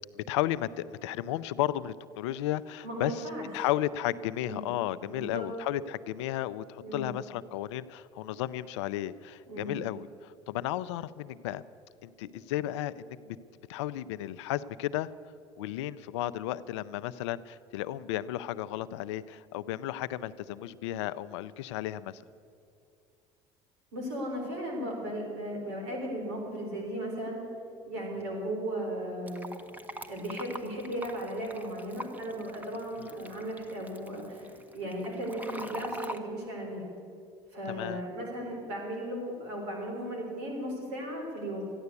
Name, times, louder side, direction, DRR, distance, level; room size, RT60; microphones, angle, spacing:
voice 1, 0.1-3.2 3.5-11.6 12.0-13.4 13.7-15.1 15.6-22.2 33.0-33.1 37.7-38.0, left 13 dB, 85° left, 15 dB, 0.5 m, -33 dB
voice 2, 2.8-3.5 4.4-4.6 5.1-5.5 6.8-7.1 9.5-9.7 23.9-27.4 27.9-29.5 30.1-36.8 37.5-41.7, right 1 dB, 80° right, 0 dB, 3.9 m, -36 dB
Fill (with liquid), 29.3-36.2, equal, 10° right, 1.3 m, -44 dB
13.5 x 10.5 x 8.3 m, 2.5 s
hypercardioid pair, 75°, 14 cm